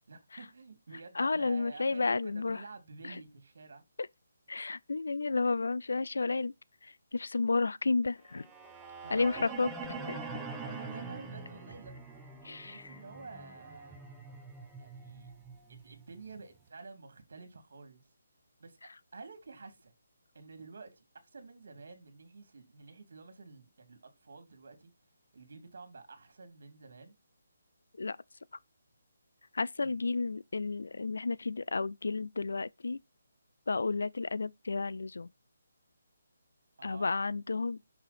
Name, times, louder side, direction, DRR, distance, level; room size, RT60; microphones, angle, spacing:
voice 1, 0.1-3.8 9.0-9.6 10.6-11.9 12.6-14.0 14.8-15.3 15.7-18.0 18.6-18.8 19.1-19.9 20.3-21.0 21.3-24.9 25.3-27.1 29.8-30.0 36.8-37.2, right 4 dB, 65° right, 2.5 m, -50 dB
voice 2, 1.1-2.6 3.0-3.2 4.0-4.1 4.5-6.5 6.8-8.5 9.1-10.4 12.4-12.9 28.0-28.2 29.5-33.0 33.7-35.3 36.8-37.8, left 3 dB, 85° left, 0.4 m, -32 dB
sound 1, 8.3-16.4, right 4 dB, 5° right, 0.9 m, -45 dB
6.1 x 5.6 x 4.2 m
hypercardioid pair, 170°, 0 cm